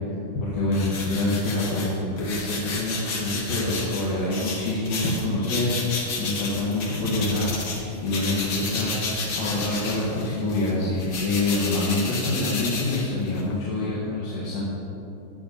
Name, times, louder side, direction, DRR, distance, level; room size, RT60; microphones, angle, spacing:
voice 1, 0.4-5.8 6.2-8.9 9.4-14.6, left 2 dB, 85° left, -7 dB, 3.3 m, -26 dB
sound 1, 0.7-7.8 8.1-13.5, left 3 dB, 50° left, 1.6 m, -32 dB
18.0 x 6.8 x 4.2 m, 2.9 s
omnidirectional pair, 3.9 m